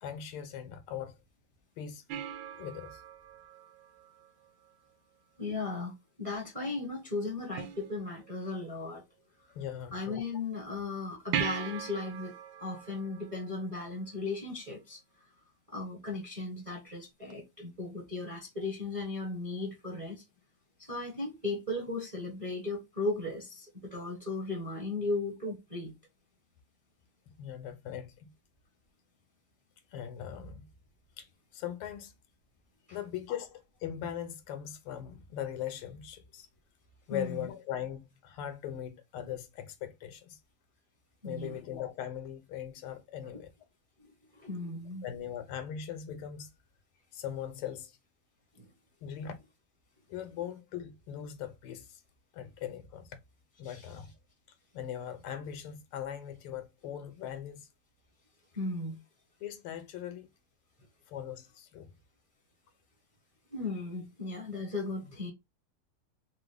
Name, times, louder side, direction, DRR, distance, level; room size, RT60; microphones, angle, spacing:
voice 1, 0.0-1.2 1.8-2.0 2.5-3.0 9.5-10.2 27.3-28.3 29.9-30.7 31.2-32.1 32.9-36.5 37.1-40.4 41.2-43.5 45.0-46.5 47.1-48.0 49.0-49.4 50.1-52.0 52.3-53.2 53.6-54.1 54.7-57.7 59.4-60.3 61.1-61.9, left 9 dB, 80° left, 1.6 m, -40 dB
sound 1, 2.1-4.7 7.6-8.5 11.3-14.3 17.3-17.4, right 9 dB, 75° right, 1.3 m, -40 dB
voice 2, 5.4-5.9 6.2-9.0 9.9-12.3 12.6-15.0 15.7-20.2 20.8-25.9 37.1-37.4 41.2-41.6 44.3-45.1 48.6-48.7 53.6-53.9 58.6-59.0 63.5-65.3, left 3 dB, 25° right, 0.8 m, -36 dB
4.7 x 2.1 x 3.2 m
omnidirectional pair, 2.4 m